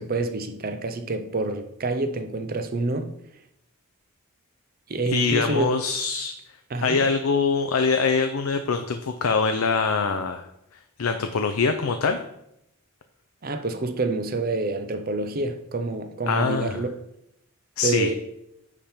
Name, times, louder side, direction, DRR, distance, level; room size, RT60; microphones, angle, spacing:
voice 1, 0.0-3.1 4.9-5.7 6.7-7.0 13.4-16.9 17.8-18.1, right 2 dB, 45° right, 8 dB, 0.7 m, -27 dB
voice 2, 5.1-6.3 6.8-10.5 11.0-12.2 16.3-16.8 17.8-18.1, left 4 dB, 85° left, 7 dB, 0.6 m, -23 dB
9.9 x 3.7 x 4.3 m, 0.79 s
head